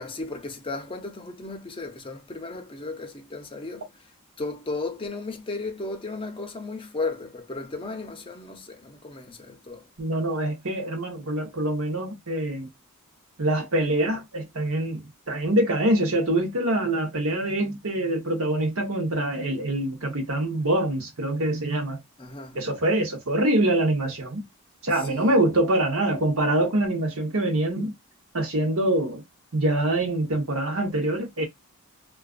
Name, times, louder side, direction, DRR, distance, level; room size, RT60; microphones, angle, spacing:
voice 1, 0.0-4.0 4.4-9.9 22.2-22.6 24.9-25.4, left 3 dB, 25° left, 0.5 m, -35 dB
voice 2, 10.0-12.7 13.4-22.0 22.5-24.4 24.8-27.9 28.3-29.2 29.5-31.4, right 1 dB, 70° right, 1.0 m, -25 dB
2.4 x 2.4 x 2.4 m
head